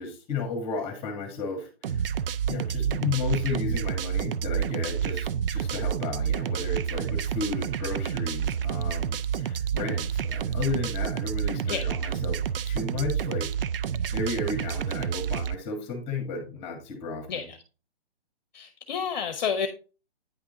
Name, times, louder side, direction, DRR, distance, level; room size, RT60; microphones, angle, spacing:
voice 1, 0.0-2.1 2.5-12.4 12.6-13.5 14.1-17.5, left 4 dB, 20° left, 6 dB, 1.4 m, -33 dB
sound 1, 1.8-15.6, right 8 dB, 65° right, 0.4 m, -29 dB
voice 2, 18.5-19.7, left 7 dB, 45° left, 8 dB, 0.8 m, -30 dB
9.3 x 3.5 x 3.9 m, 0.35 s
hypercardioid pair, 150°, 31 cm